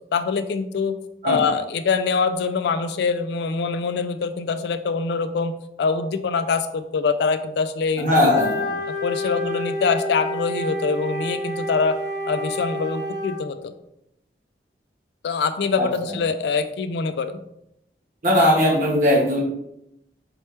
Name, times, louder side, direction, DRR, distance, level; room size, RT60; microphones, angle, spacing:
voice 1, 0.1-1.0 1.2-8.5 9.0-12.0 12.3-13.7 15.2-17.4, left 5 dB, 75° left, 10 dB, 0.3 m, -24 dB
voice 2, 8.0-8.5 15.8-15.9 18.2-19.4, left 1 dB, 45° right, -3 dB, 1.2 m, -18 dB
Wind instrument woodwind instrument, 8.2-13.4, equal, 20° left, 1.6 m, -29 dB
4.3 x 3.2 x 3.2 m, 0.80 s
head